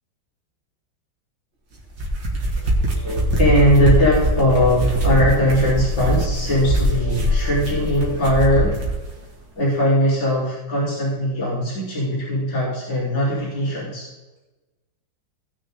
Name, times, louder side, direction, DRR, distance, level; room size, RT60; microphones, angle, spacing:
sound 1, 1.8-9.0, right 1 dB, 70° right, 2.9 m, -22 dB
voice 1, 2.6-8.8 9.6-14.1, equal, 55° left, -7 dB, 4.3 m, -20 dB
19.0 x 6.5 x 3.7 m, 1.1 s
omnidirectional pair, 2.1 m